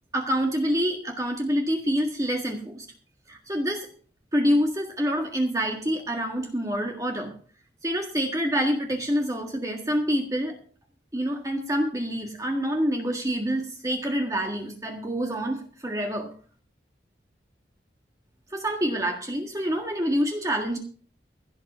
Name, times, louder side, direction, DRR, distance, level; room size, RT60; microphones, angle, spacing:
voice 1, 0.1-2.9 3.3-3.9 4.3-7.4 7.8-10.6 11.1-16.3 18.5-20.8, equal, 20° right, 2 dB, 1.7 m, -27 dB
15.5 x 8.4 x 5.6 m, 0.42 s
head